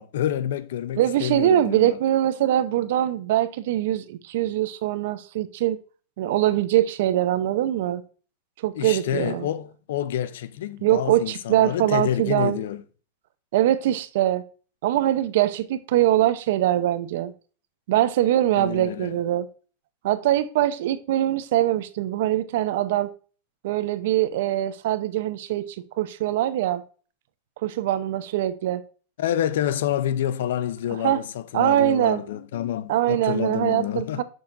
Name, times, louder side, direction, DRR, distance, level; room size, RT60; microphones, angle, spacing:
voice 1, 0.0-2.0 8.7-12.8 18.6-19.2 29.2-34.2, left 11 dB, 80° left, 0.5 m, -28 dB
voice 2, 1.0-5.8 6.2-8.0 8.6-9.5 10.8-12.6 13.5-14.4 14.8-17.3 17.9-19.5 20.0-23.1 23.6-26.8 27.6-28.8 31.0-31.2 31.5-32.2 32.9-34.2, right 13 dB, 65° right, 0.6 m, -23 dB
7.2 x 6.3 x 2.5 m
supercardioid pair, 150°, 0 cm